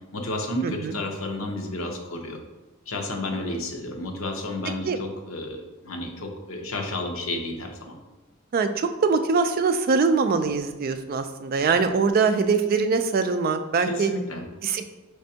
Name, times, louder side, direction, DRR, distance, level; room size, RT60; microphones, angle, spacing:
voice 1, 0.1-2.4 2.9-8.0 13.9-14.4, left 1 dB, 75° left, 3 dB, 0.7 m, -31 dB
voice 2, 0.6-1.0 4.8-5.0 8.5-14.1 14.6-14.9, right 4 dB, 45° right, 8 dB, 0.3 m, -23 dB
5.2 x 3.3 x 2.7 m, 1.1 s
head